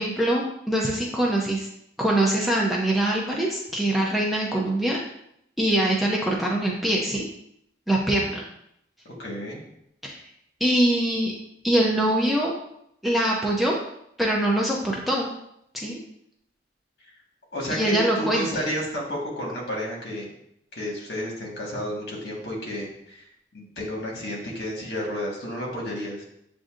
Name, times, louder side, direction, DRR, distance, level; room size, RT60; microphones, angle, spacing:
voice 1, 0.0-1.7 2.0-5.0 5.6-7.3 7.9-8.4 10.0-10.1 10.6-11.3 11.6-12.5 13.0-13.8 14.2-15.3 15.7-16.0 17.7-18.4, right 1 dB, ahead, -3 dB, 0.5 m, -23 dB
voice 2, 9.0-9.6 17.5-20.3 20.7-23.3 23.5-26.2, equal, 65° left, -2 dB, 1.4 m, -31 dB
7.6 x 2.6 x 2.4 m, 0.75 s
head